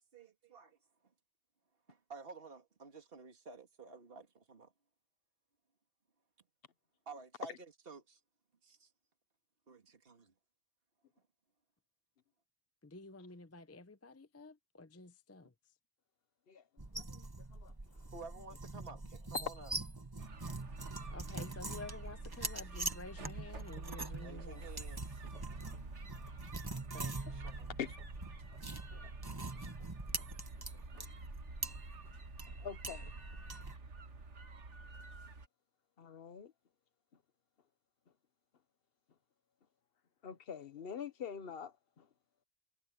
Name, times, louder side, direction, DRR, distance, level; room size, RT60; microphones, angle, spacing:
voice 1, 0.1-0.8 1.9-4.7 7.1-8.2 8.6-8.9 9.7-10.3 18.1-19.7 21.0-21.2 24.0-25.2 26.9-27.7, right 4 dB, 55° right, 2.3 m, -52 dB
voice 2, 12.8-15.5 21.1-24.7, left 2 dB, 15° left, 0.6 m, -51 dB
sound 1, 16.8-33.8, right 2 dB, 20° right, 1.3 m, -44 dB
voice 3, 16.9-17.7 27.8-27.9 28.9-29.1 32.6-33.1 36.0-36.5 40.2-42.1, left 7 dB, 55° left, 1.2 m, -45 dB
sound 2, 20.2-35.5, right 3 dB, 85° right, 1.8 m, -49 dB
omnidirectional pair, 1.2 m